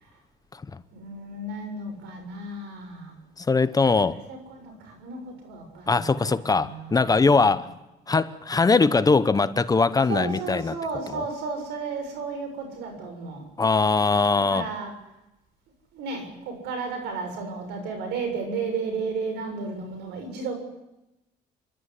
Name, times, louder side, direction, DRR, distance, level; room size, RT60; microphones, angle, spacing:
voice 1, 0.9-3.1 4.3-7.6 10.1-13.5 14.5-14.9 15.9-20.5, right 4 dB, 85° right, 7.1 m, -33 dB
voice 2, 3.4-4.2 5.9-7.7 8.1-10.7 13.6-14.7, left 4 dB, 20° left, 1.0 m, -21 dB
30.0 x 12.5 x 10.0 m
cardioid pair, 110°, 17 cm